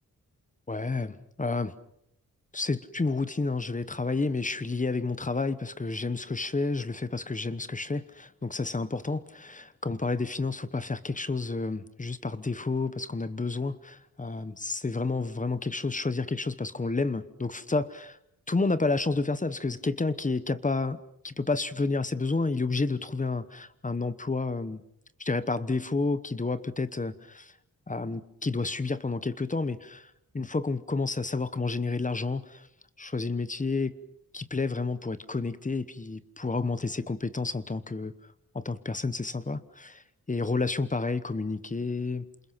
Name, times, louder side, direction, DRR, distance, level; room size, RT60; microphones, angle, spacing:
voice 1, 0.7-1.7 2.5-18.1 18.5-21.0 21.2-24.8 25.2-27.5 27.9-32.7 33.0-34.0 34.3-38.1 38.5-42.3, left 3 dB, 20° left, 14 dB, 1.1 m, -30 dB
29.0 x 27.5 x 5.8 m, 0.76 s
wide cardioid pair, 140°, 35 cm